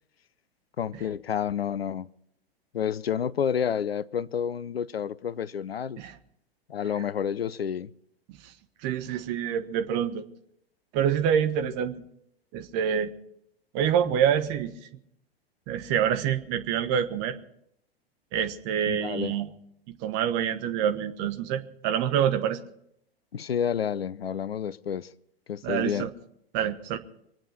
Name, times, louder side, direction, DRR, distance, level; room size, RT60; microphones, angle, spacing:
voice 1, 0.8-2.1 2.7-6.0 6.7-7.9 18.9-19.4 23.3-25.1 25.5-26.1, left 8 dB, 70° left, 0.6 m, -29 dB
voice 2, 8.8-10.2 10.9-12.0 12.5-13.1 13.7-14.7 15.7-17.4 18.3-19.5 20.0-22.6 25.6-26.1 26.5-27.0, right 9 dB, 35° right, 1.3 m, -26 dB
25.5 x 8.9 x 5.8 m
figure-of-eight pair, 100°, 31 cm